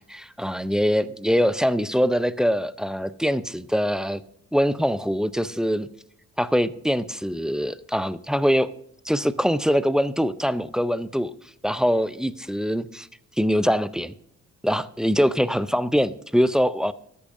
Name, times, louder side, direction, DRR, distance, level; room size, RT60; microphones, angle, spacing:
voice 1, 0.0-4.2 4.5-5.9 6.4-8.7 9.0-11.3 11.6-13.1 13.4-14.2 14.6-16.9, equal, ahead, 14 dB, 0.4 m, -23 dB
13.5 x 8.5 x 2.6 m, 0.73 s
cardioid pair, 90°, 30 cm